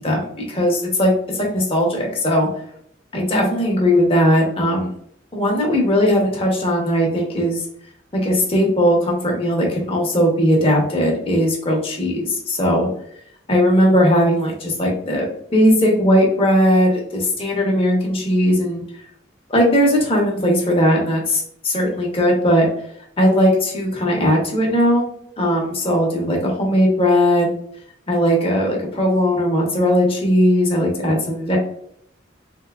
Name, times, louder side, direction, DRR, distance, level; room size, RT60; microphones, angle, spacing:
voice 1, 0.0-2.5 3.1-4.9 5.3-7.6 8.1-12.9 13.5-18.8 19.5-22.7 23.2-25.1 25.4-27.5 28.1-31.6, equal, 30° left, -1 dB, 0.8 m, -18 dB
3.6 x 2.7 x 2.3 m, 0.68 s
head